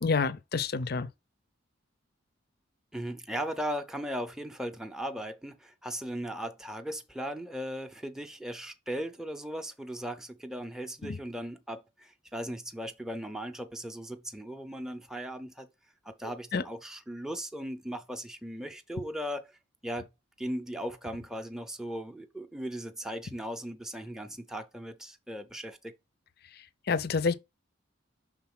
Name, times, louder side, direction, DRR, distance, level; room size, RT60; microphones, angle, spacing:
voice 1, 0.0-1.1 11.0-11.2 16.5-16.6 26.9-27.3, left 4 dB, 50° left, 0.6 m, -28 dB
voice 2, 2.9-15.7 16.0-19.6 19.8-20.1 20.4-25.9, equal, 5° right, 0.6 m, -37 dB
5.8 x 3.8 x 5.9 m
head